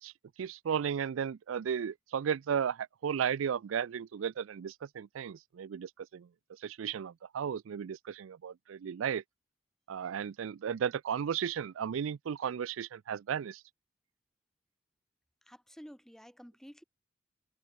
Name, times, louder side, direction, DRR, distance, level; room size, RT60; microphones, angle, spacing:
voice 1, 0.0-9.2 9.9-13.6, right 8 dB, 85° right, 0.4 m, -35 dB
voice 2, 15.5-16.8, equal, ahead, 4.2 m, -51 dB
head